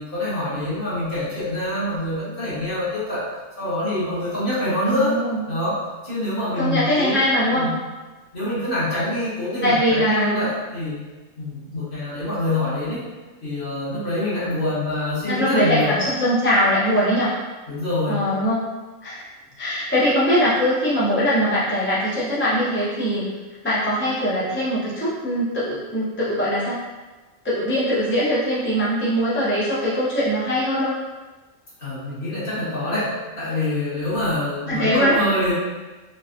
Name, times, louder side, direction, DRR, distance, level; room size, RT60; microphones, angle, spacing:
voice 1, 0.0-3.2 3.6-5.2 5.5-5.8 6.0-7.2 7.5-7.8 8.3-11.0 11.4-13.0 13.4-16.0 17.7-18.3 31.8-35.5, left 1 dB, 40° left, -10 dB, 1.6 m, -25 dB
voice 2, 4.9-5.4 6.6-7.7 9.6-10.5 15.3-17.3 18.1-18.7 19.0-19.2 19.6-23.3 23.6-26.8 27.4-30.9 34.7-35.2, equal, 15° left, -9 dB, 0.5 m, -21 dB
4.0 x 3.3 x 2.6 m, 1.3 s
omnidirectional pair, 1.4 m